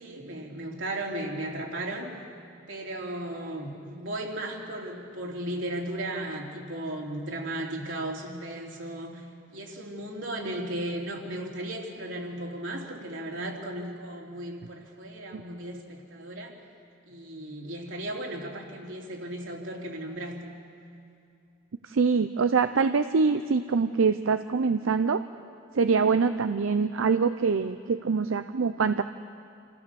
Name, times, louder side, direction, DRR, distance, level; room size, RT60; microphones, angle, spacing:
voice 1, 0.0-2.1 2.7-9.2 9.5-16.6 17.1-20.5, right 1 dB, 70° right, -1 dB, 3.2 m, -35 dB
voice 2, 21.9-25.2 25.7-29.0, right 5 dB, 90° right, 10 dB, 0.5 m, -24 dB
27.5 x 15.5 x 7.0 m, 2.5 s
head